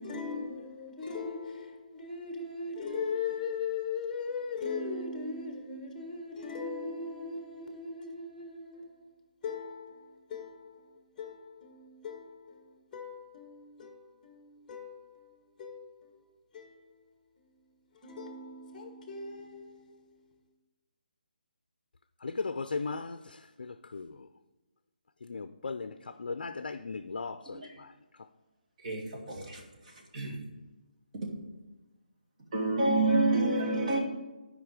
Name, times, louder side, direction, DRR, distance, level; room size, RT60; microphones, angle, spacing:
voice 1, 0.0-9.1 9.4-17.0 17.9-20.2, left 4 dB, 10° left, 1.1 m, -39 dB
voice 2, 22.2-24.3 25.2-27.9, left 4 dB, 70° left, 0.4 m, -37 dB
voice 3, 29.3-29.6 30.1-30.3 32.5-34.0, right 2 dB, 50° right, 2.1 m, -27 dB
9.8 x 5.1 x 5.1 m
figure-of-eight pair, 155°, 5 cm